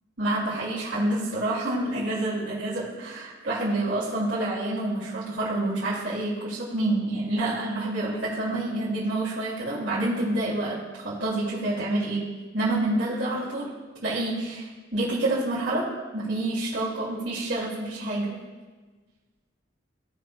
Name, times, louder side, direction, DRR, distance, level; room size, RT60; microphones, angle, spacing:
voice 1, 0.2-10.8 11.0-12.3 12.5-13.7 14.0-15.9 16.1-18.4, right 2 dB, 70° right, -9 dB, 2.4 m, -28 dB
16.5 x 6.1 x 2.2 m, 1.4 s
head